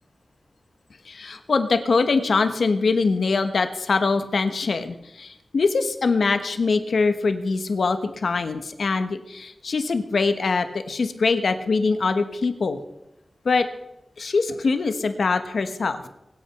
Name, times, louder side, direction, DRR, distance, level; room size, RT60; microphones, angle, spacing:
voice 1, 1.1-12.8 13.4-13.7 14.2-16.0, left 4 dB, 75° left, 9 dB, 1.2 m, -23 dB
23.0 x 8.7 x 5.9 m, 0.88 s
wide cardioid pair, 65°, 0 cm